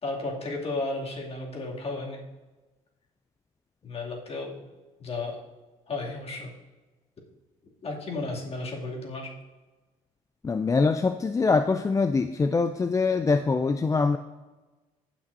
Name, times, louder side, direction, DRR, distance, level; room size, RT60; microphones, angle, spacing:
voice 1, 0.0-2.2 3.8-4.7 5.0-5.4 5.9-6.5 7.8-9.3, left 2 dB, 40° left, -2 dB, 2.6 m, -33 dB
voice 2, 10.4-14.2, left 4 dB, 20° left, 9 dB, 0.4 m, -24 dB
16.0 x 6.1 x 2.7 m, 1.2 s
supercardioid pair, 75°, 15 cm